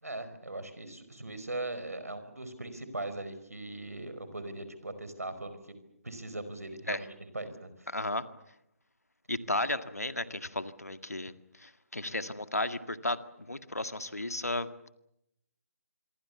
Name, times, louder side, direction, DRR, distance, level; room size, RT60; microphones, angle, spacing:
voice 1, 0.0-5.6 6.0-7.1 7.3-7.9, right 2 dB, 75° right, 11 dB, 5.0 m, -39 dB
voice 2, 7.9-8.3 9.3-14.9, left 2 dB, 80° left, 10 dB, 1.9 m, -34 dB
27.0 x 23.5 x 7.2 m, 0.81 s
figure-of-eight pair, 145°, 8 cm